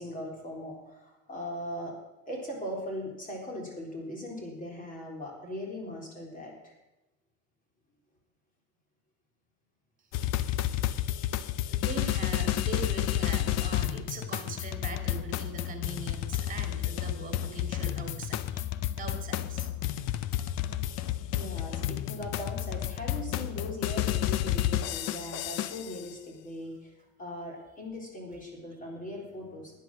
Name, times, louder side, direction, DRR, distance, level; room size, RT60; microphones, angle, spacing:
voice 1, 0.0-2.0 2.3-6.7 21.4-26.9 27.2-29.8, left 1 dB, 25° left, -1 dB, 3.8 m, -39 dB
sound 1, 10.1-26.0, left 12 dB, 60° left, 0.7 m, -31 dB
voice 2, 11.7-19.7, right 5 dB, 25° right, 4 dB, 2.4 m, -41 dB
10.5 x 10.0 x 6.1 m, 0.98 s
cardioid pair, 125°, 29 cm